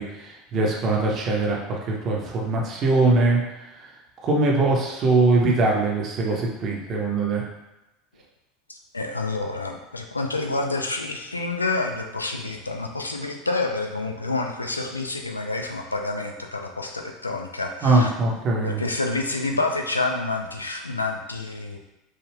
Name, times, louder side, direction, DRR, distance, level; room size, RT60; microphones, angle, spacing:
voice 1, 0.0-3.4 3.8-3.9 4.2-7.5 17.8-18.8, right 3 dB, 35° right, -1 dB, 0.7 m, -22 dB
voice 2, 8.7-18.1 18.6-21.8, left 3 dB, 85° left, 3 dB, 0.3 m, -28 dB
3.1 x 2.3 x 3.2 m, 0.97 s
figure-of-eight pair, 75°, 0 cm